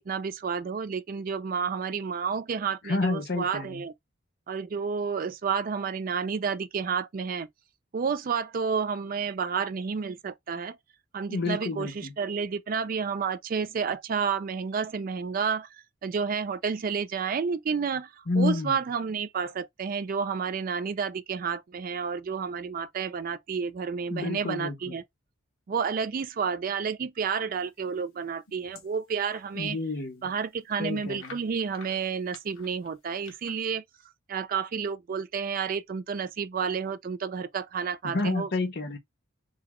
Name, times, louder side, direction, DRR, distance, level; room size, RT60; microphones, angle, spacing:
voice 1, 0.0-3.9 4.5-7.5 7.9-10.8 11.1-25.0 25.7-29.8 30.2-33.8 34.3-38.5, right 6 dB, 40° right, 0.3 m, -30 dB
voice 2, 2.8-3.8 11.3-12.1 18.3-18.8 24.1-24.9 29.6-30.3 30.8-31.4 38.0-39.0, left 2 dB, 50° left, 0.7 m, -29 dB
sound 1, 28.0-29.5 30.0-30.1 30.3-30.4 31.2-33.7, left 5 dB, 85° left, 1.1 m, -51 dB
3.8 x 2.3 x 3.0 m
head